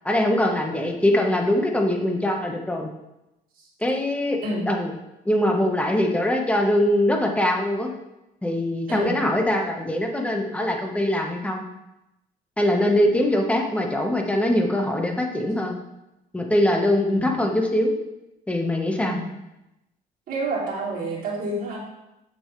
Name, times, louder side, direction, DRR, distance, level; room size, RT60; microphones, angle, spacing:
voice 1, 0.0-2.9 3.8-4.4 4.7-4.9 5.2-7.9 8.4-11.6 12.6-15.8 16.3-17.9 18.5-19.2, left 1 dB, 5° left, 2 dB, 1.2 m, -22 dB
voice 2, 20.3-21.8, right 2 dB, 60° right, -5 dB, 3.0 m, -28 dB
8.1 x 6.9 x 3.3 m, 0.92 s
cardioid pair, 110°, 17 cm